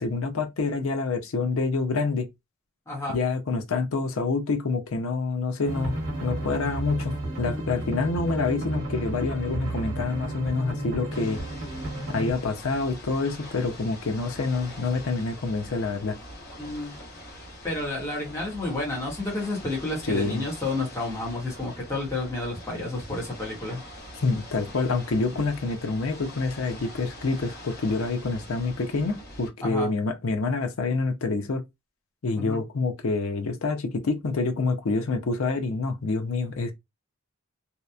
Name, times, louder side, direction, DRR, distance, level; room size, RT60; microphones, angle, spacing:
voice 1, 0.0-2.3 3.1-11.4 12.1-16.2 20.1-20.4 24.2-31.6 32.2-36.7, left 3 dB, 70° left, 0.5 m, -27 dB
voice 2, 2.9-3.2 16.6-17.0 17.6-23.8 29.6-29.9 32.4-32.6, left 2 dB, 10° left, 0.9 m, -30 dB
sound 1, 5.7-12.3, right 1 dB, 55° right, 1.1 m, -32 dB
Ocean / Boat Water vehicle, 11.1-29.5, left 1 dB, 45° left, 1.0 m, -43 dB
2.8 x 2.0 x 2.3 m
head